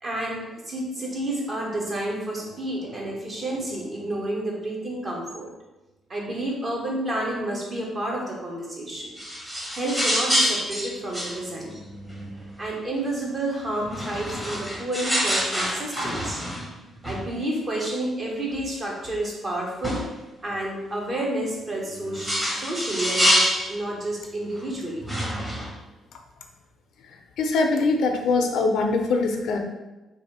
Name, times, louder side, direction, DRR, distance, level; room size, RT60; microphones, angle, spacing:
voice 1, 0.0-5.5 6.1-9.2 9.7-11.8 12.6-16.4 17.0-20.0 20.4-25.1, right 1 dB, 35° right, -2 dB, 1.3 m, -30 dB
sound 1, 9.2-12.7 13.8-16.8 17.0-17.2 17.8-17.9 18.5-18.6 19.0-19.1 19.8-20.1 21.7-23.7 24.6-24.7 25.0-25.7, equal, 10° right, 1.1 m, -26 dB
voice 2, 27.4-29.6, left 3 dB, 75° left, 3 dB, 0.5 m, -22 dB
3.4 x 2.6 x 4.2 m, 1.1 s
cardioid pair, 90°, 0 cm